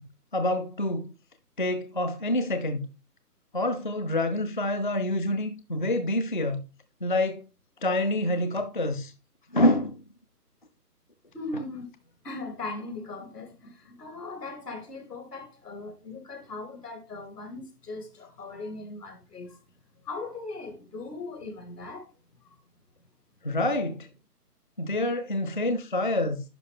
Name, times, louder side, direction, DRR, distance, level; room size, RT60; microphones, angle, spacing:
voice 1, 0.3-1.1 1.6-2.9 3.5-6.6 7.0-7.5 7.8-9.1 9.5-10.0 23.4-24.1 24.8-26.4, left 1 dB, 35° left, 0.4 m, -27 dB
voice 2, 11.3-11.9 12.2-19.6 20.0-22.1, left 2 dB, 75° left, 3.0 m, -39 dB
11.0 x 4.9 x 3.4 m
figure-of-eight pair, 145°, 48 cm